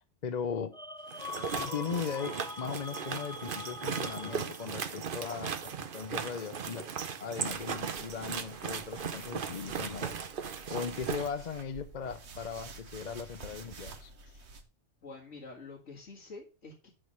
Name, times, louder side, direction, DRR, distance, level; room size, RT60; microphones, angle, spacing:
voice 1, 0.2-0.8 1.6-6.9 7.2-10.1 10.7-14.1, left 6 dB, 45° left, 0.7 m, -38 dB
sound 1, 0.7-4.9, left 3 dB, 5° left, 0.4 m, -43 dB
sound 2, 1.1-11.3, right 6 dB, 50° right, 0.9 m, -37 dB
sound 3, 7.5-14.6, right 3 dB, 70° right, 1.5 m, -49 dB
voice 2, 15.0-16.9, left 3 dB, 90° left, 2.3 m, -47 dB
11.0 x 3.7 x 6.5 m
omnidirectional pair, 1.2 m